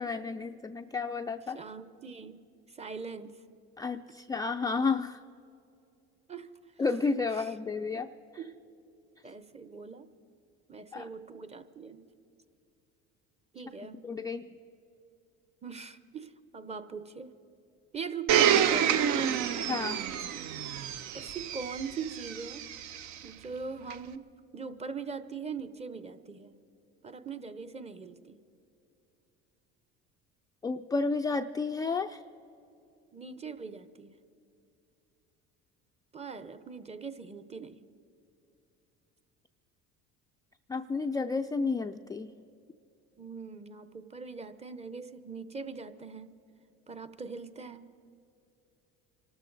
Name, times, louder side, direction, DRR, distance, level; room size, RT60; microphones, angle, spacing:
voice 1, 0.0-1.6 3.8-5.2 6.8-8.1 10.9-11.1 14.0-14.5 19.6-20.0 30.6-32.2 40.7-42.3, left 4 dB, 15° left, 6 dB, 0.3 m, -31 dB
voice 2, 1.5-2.4 2.7-3.3 6.3-6.5 7.3-7.5 8.4-8.6 9.2-10.1 10.7-12.1 13.5-14.0 15.6-17.3 17.9-19.4 21.1-22.6 23.2-24.3 24.5-26.6 27.0-28.4 33.1-34.2 36.1-37.8 43.2-46.3 46.9-47.9, right 5 dB, 20° right, 12 dB, 0.8 m, -41 dB
Domestic sounds home sounds, 18.3-23.1 23.9-24.0, right 9 dB, 65° right, 0.7 m, -28 dB
25.0 x 13.0 x 4.0 m, 2.7 s
supercardioid pair, 90°, 31 cm